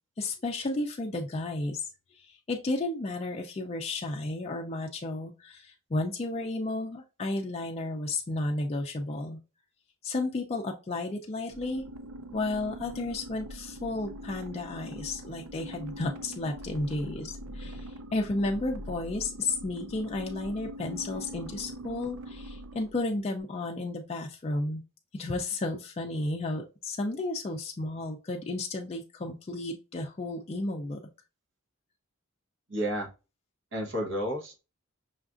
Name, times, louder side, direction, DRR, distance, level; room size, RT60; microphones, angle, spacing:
voice 1, 0.2-1.9 2.2-9.4 10.0-11.8 12.3-24.8 25.1-31.0, left 2 dB, 30° left, 1 dB, 0.3 m, -33 dB
sound 1, 11.5-23.2, equal, 80° right, 0.5 m, -43 dB
voice 2, 32.7-33.1 33.7-34.6, equal, 55° right, 0 dB, 1.0 m, -31 dB
5.6 x 2.4 x 2.4 m, 0.30 s
head